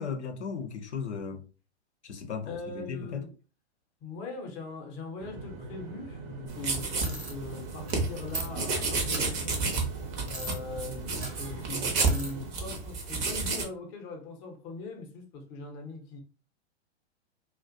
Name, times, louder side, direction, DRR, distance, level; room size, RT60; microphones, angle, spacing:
voice 1, 0.0-1.5 2.0-3.2, left 6 dB, 80° left, 0.6 m, -36 dB
voice 2, 2.5-3.3 4.0-9.9 10.2-16.2, left 3 dB, 30° left, 0.6 m, -41 dB
sound 1, 5.2-12.5, right 2 dB, 60° right, 0.7 m, -43 dB
sound 2, 6.5-13.6, right 4 dB, 25° right, 0.5 m, -31 dB
sound 3, 7.0-7.3 7.9-8.0 8.3-8.5 9.1-9.2 10.3-10.6 11.1-11.4 12.0-12.3, right 2 dB, 75° right, 0.9 m, -37 dB
2.4 x 2.1 x 2.4 m
figure-of-eight pair, 110°, 34 cm